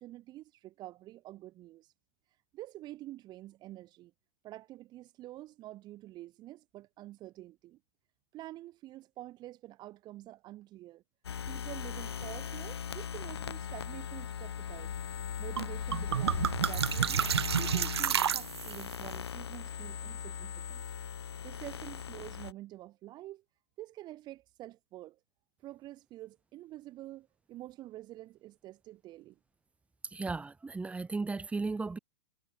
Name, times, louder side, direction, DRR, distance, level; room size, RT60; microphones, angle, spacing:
voice 1, 0.0-1.9 2.5-4.1 4.4-7.8 8.3-11.0 11.5-15.0 15.4-17.3 17.6-20.9 21.4-23.4 23.8-25.2 25.6-29.4, right 15 dB, 30° right, 4.7 m, -47 dB
sound 1, 11.2-22.5, left 8 dB, 65° left, 3.1 m, -39 dB
sound 2, 15.6-15.7 15.9-18.9, right 8 dB, 65° right, 0.6 m, -30 dB
voice 2, 30.1-32.0, right 3 dB, 10° right, 7.7 m, -35 dB
figure-of-eight pair, 105°, 15 cm